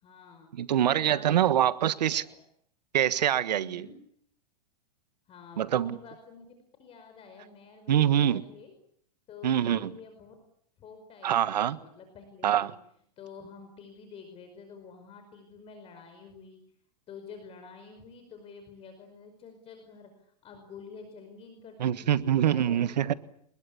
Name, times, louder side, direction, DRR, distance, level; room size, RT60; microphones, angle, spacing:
voice 1, 0.0-1.5 2.1-2.2 3.5-4.0 5.3-8.7 9.3-10.3 10.8-12.8 13.2-16.6 17.1-23.2, left 5 dB, 30° left, 6 dB, 5.1 m, -49 dB
voice 2, 0.5-2.2 2.9-3.8 5.6-6.0 7.9-8.4 9.4-9.9 11.2-11.8 12.4-12.7 21.8-23.1, right 10 dB, 90° right, 15 dB, 1.4 m, -25 dB
28.0 x 21.0 x 8.4 m, 0.67 s
hypercardioid pair, 135°, 21 cm